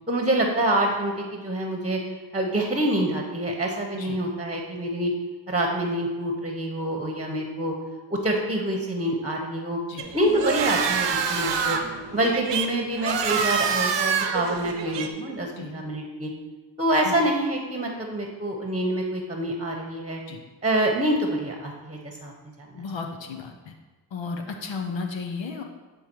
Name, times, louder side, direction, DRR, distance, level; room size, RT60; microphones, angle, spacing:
voice 1, 0.1-2.0 2.3-5.1 5.5-7.7 8.1-9.8 10.1-11.8 12.1-16.3 16.8-20.2 20.6-22.3 22.6-22.8, right 1 dB, 15° right, 1 dB, 1.0 m, -26 dB
sound 1, 10.0-15.1, right 6 dB, 70° right, 0.8 m, -26 dB
voice 2, 22.7-23.7 24.1-25.6, left 4 dB, 75° left, 4 dB, 0.8 m, -33 dB
8.6 x 3.6 x 4.5 m, 1.3 s
cardioid pair, 55°, 45 cm